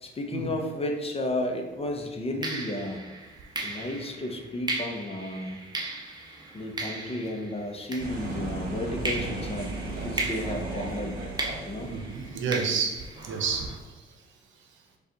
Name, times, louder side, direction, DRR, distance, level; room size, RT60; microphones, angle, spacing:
voice 1, 0.0-3.0 3.6-5.6 6.5-9.7 10.0-11.2 11.7-11.9, left 1 dB, 30° left, 3 dB, 0.7 m, -33 dB
sound 1, 1.3-1.5 2.4-8.6 9.0-13.8, right 2 dB, 20° right, 0.7 m, -37 dB
sound 2, 8.0-12.6, right 3 dB, 45° right, 1.3 m, -36 dB
voice 2, 11.9-14.0, right 5 dB, 70° right, 3 dB, 0.8 m, -30 dB
5.2 x 2.4 x 3.9 m, 1.2 s
cardioid pair, 90°, 20 cm